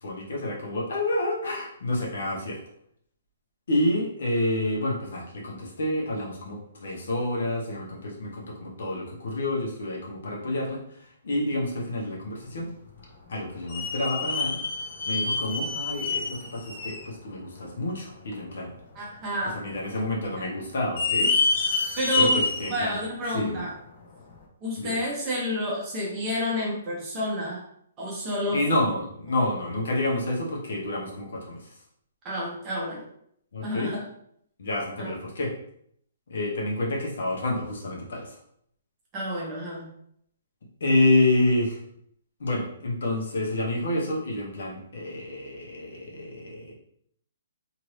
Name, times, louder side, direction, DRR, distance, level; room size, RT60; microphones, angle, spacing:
voice 1, 0.0-2.6 3.7-12.7 13.3-14.6 15.1-18.7 19.5-21.3 22.2-22.9 23.3-23.6 24.8-24.9 28.5-31.7 33.5-33.9 34.6-35.5 36.3-38.4 40.8-41.8 42.4-46.7, left 1 dB, 65° left, -2 dB, 1.0 m, -28 dB
sound 1, 12.9-13.0 13.7-17.1 17.6-17.7 18.3-18.4 19.3-19.7 20.0-20.1 20.8-22.8 23.3-23.4 24.3-24.4, left 3 dB, 35° left, 0.5 m, -27 dB
voice 2, 18.9-19.6 20.4-20.5 22.0-22.4 22.7-23.7 24.6-27.6 28.0-28.6 32.2-33.1 33.6-34.0 35.0-35.1 39.1-39.9, equal, 15° right, -4 dB, 0.7 m, -29 dB
2.9 x 2.6 x 3.2 m, 0.68 s
hypercardioid pair, 180°, 0 cm